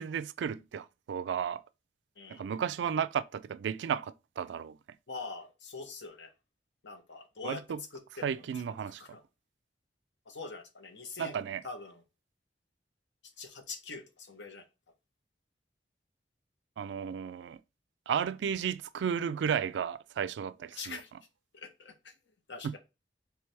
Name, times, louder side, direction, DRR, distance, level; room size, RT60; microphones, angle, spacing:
voice 1, 0.0-1.6 2.3-4.8 7.4-7.8 8.2-9.0 11.2-11.6 16.8-17.6 18.1-21.0 22.6-22.8, right 7 dB, 80° right, 0.3 m, -33 dB
voice 2, 5.1-6.3 6.8-7.6 7.9-9.2 10.3-12.0 13.4-14.6 20.7-21.1 21.5-22.1 22.5-22.8, left 4 dB, 80° left, 1.0 m, -44 dB
4.7 x 3.3 x 3.3 m
head